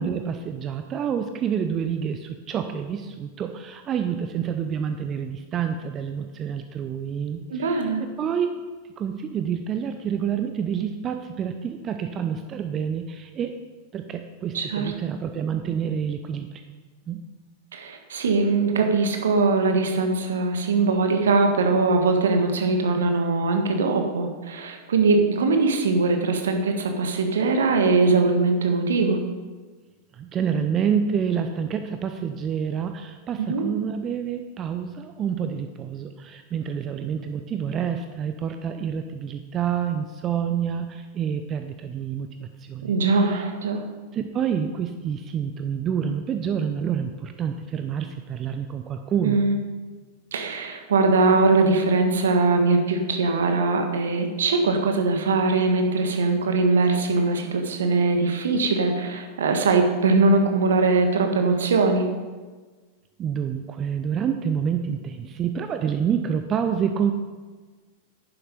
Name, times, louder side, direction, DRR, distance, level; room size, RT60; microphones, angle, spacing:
voice 1, 0.0-8.5 9.0-13.5 13.9-16.5 17.1-17.2 30.1-43.4 44.1-49.4 63.2-67.1, right 7 dB, 30° right, 7 dB, 0.7 m, -28 dB
voice 2, 7.5-8.0 14.5-14.9 17.7-29.2 33.4-33.7 42.8-43.8 49.2-49.5 50.3-62.1, right 3 dB, 65° right, 4 dB, 1.6 m, -21 dB
11.0 x 9.9 x 5.2 m, 1.4 s
figure-of-eight pair, 90°, 0 cm